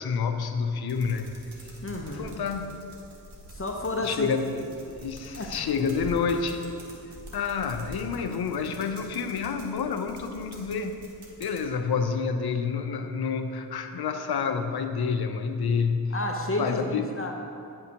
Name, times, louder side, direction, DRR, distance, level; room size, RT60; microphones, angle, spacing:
voice 1, 0.0-1.4 2.1-2.9 4.0-4.5 4.9-6.7 7.3-11.1 11.4-16.1 16.6-17.2, left 5 dB, 70° left, 7 dB, 0.6 m, -29 dB
sound 1, 0.9-11.6, equal, 85° right, 1.1 m, -46 dB
voice 2, 1.8-2.4 3.5-4.3 5.4-5.5 16.1-17.3, left 2 dB, 35° left, 1 dB, 0.8 m, -30 dB
9.4 x 5.6 x 2.8 m, 2.6 s
cardioid pair, 45°, 39 cm